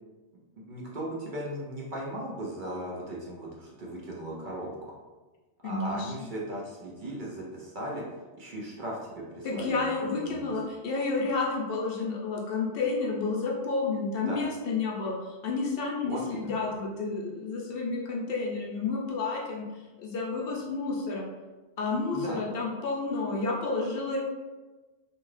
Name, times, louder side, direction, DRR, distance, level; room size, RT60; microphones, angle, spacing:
voice 1, 0.7-4.9 5.6-8.0 8.4-10.5 14.3-14.4 16.0-16.6 22.1-22.4, right 1 dB, 60° right, -3 dB, 0.6 m, -37 dB
voice 2, 5.6-6.3 9.4-21.3 21.8-24.2, left 3 dB, 65° left, -3 dB, 0.7 m, -30 dB
2.5 x 2.3 x 3.1 m, 1.2 s
omnidirectional pair, 1.1 m